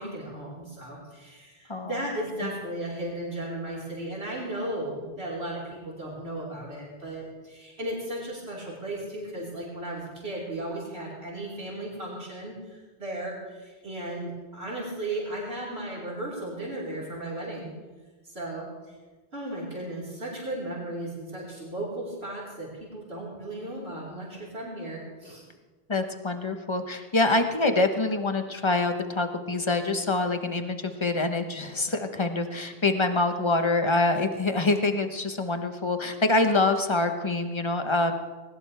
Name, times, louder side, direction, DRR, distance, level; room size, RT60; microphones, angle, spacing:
voice 1, 0.0-17.7 18.2-19.0 19.3-25.4, right 1 dB, 80° right, -6 dB, 4.9 m, -35 dB
voice 2, 25.9-38.1, left 2 dB, 30° left, 7 dB, 1.2 m, -25 dB
20.5 x 19.5 x 3.5 m, 1.3 s
omnidirectional pair, 1.0 m